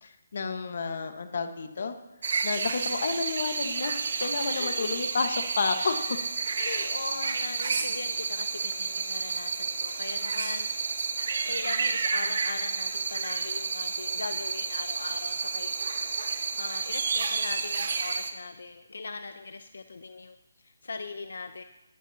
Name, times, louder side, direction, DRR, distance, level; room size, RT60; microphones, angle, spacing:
voice 1, 0.0-2.0 2.4-6.2 6.6-6.9, left 4 dB, 55° left, 7 dB, 1.4 m, -31 dB
sound 1, 2.2-18.3, right 5 dB, 55° right, 1.4 m, -30 dB
voice 2, 4.4-5.0 5.8-11.1 11.4-16.2 16.5-21.6, left 4 dB, 80° left, 8 dB, 0.8 m, -40 dB
20.0 x 14.5 x 2.9 m, 1.0 s
hypercardioid pair, 170°, 0 cm